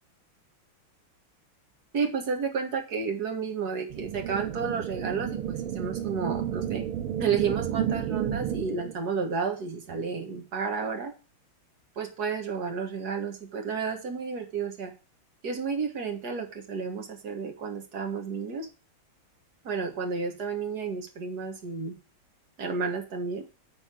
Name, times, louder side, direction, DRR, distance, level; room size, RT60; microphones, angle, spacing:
voice 1, 1.9-6.9 7.2-11.1 12.0-14.9 15.4-18.7 19.6-22.0 22.6-23.4, right 5 dB, 50° right, 2 dB, 2.0 m, -31 dB
sound 1, 3.9-8.9, right 10 dB, 85° right, 1.7 m, -31 dB
10.5 x 3.9 x 7.5 m, 0.33 s
omnidirectional pair, 2.3 m